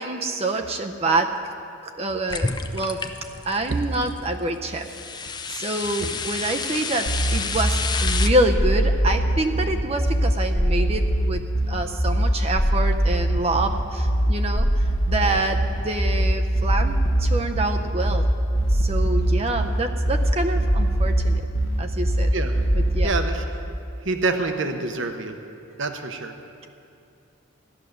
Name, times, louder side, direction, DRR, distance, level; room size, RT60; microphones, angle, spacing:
voice 1, 0.0-1.5 1.8-3.1 3.5-18.3 18.7-21.4 21.8-22.3 22.7-23.2, right 2 dB, 30° right, 5 dB, 0.6 m, -27 dB
sound 1, 2.3-4.3 4.8-8.3, left 5 dB, 20° left, 0.5 m, -30 dB
sound 2, 7.1-23.1, right 1 dB, 65° left, 1.2 m, -22 dB
voice 2, 23.0-23.4 24.0-25.4 25.8-26.3, right 3 dB, 60° right, 6 dB, 0.9 m, -26 dB
14.5 x 10.5 x 6.6 m, 2.6 s
head